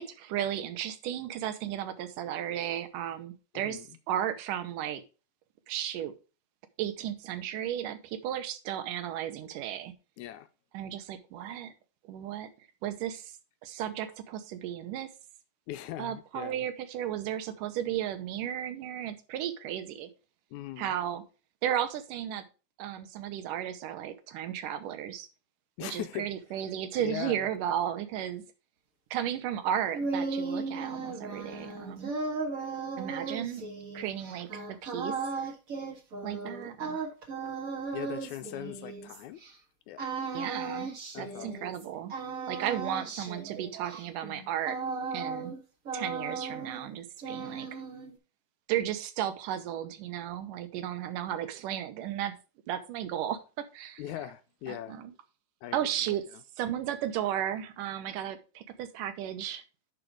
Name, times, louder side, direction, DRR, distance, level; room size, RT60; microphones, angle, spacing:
voice 1, 0.0-5.0 5.7-6.1 6.8-9.9 10.7-11.7 12.0-12.5 12.8-13.3 13.6-15.1 16.0-20.1 20.8-21.2 21.6-22.5 22.8-25.3 25.8-28.4 29.1-32.1 33.0-33.6 33.9-35.2 36.2-37.1 38.7-38.8 40.3-40.9 41.2-42.1 42.5-44.8 45.1-45.5 45.9-47.8 48.7-52.4 52.7-54.0 54.7-55.1 55.7-56.3 56.6-59.6, right 10 dB, 85° right, 2.5 m, -34 dB
voice 2, 3.5-3.9 10.2-10.5 15.7-16.6 20.5-20.9 25.8-26.3 27.0-27.5 37.9-39.4 39.9-40.1 41.1-41.7 54.0-55.0 55.6-55.8, left 12 dB, 80° left, 1.9 m, -40 dB
sound 1, 29.7-39.5 40.0-41.8 42.1-45.6 45.8-46.9 47.2-48.1, right 4 dB, 40° right, 1.3 m, -36 dB
10.5 x 4.9 x 4.7 m
omnidirectional pair, 3.7 m